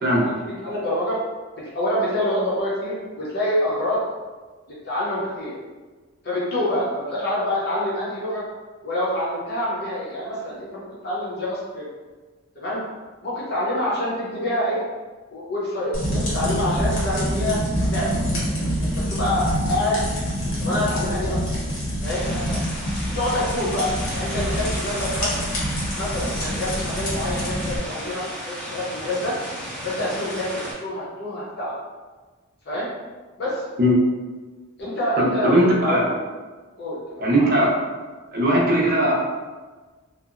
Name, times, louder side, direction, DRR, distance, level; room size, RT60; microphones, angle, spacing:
voice 1, 0.1-1.2 1.6-4.1 4.7-5.5 6.2-8.4 8.8-11.8 12.6-12.8 13.2-14.8 15.3-17.6 17.9-18.3 18.8-20.0 20.6-21.4 22.0-22.6 23.1-25.3 25.9-29.3 29.8-31.7 32.7-32.9 33.4-33.6 34.8-36.1 36.8-37.5, left 1 dB, 50° left, -7 dB, 0.6 m, -26 dB
sound 1, 15.9-27.8, equal, 75° left, 0.9 m, -26 dB
sound 2, 22.0-30.7, equal, 5° left, 0.5 m, -34 dB
voice 2, 35.2-36.1 37.2-37.7 38.3-39.1, equal, 45° right, -3 dB, 0.5 m, -19 dB
2.7 x 2.0 x 2.4 m, 1.3 s
head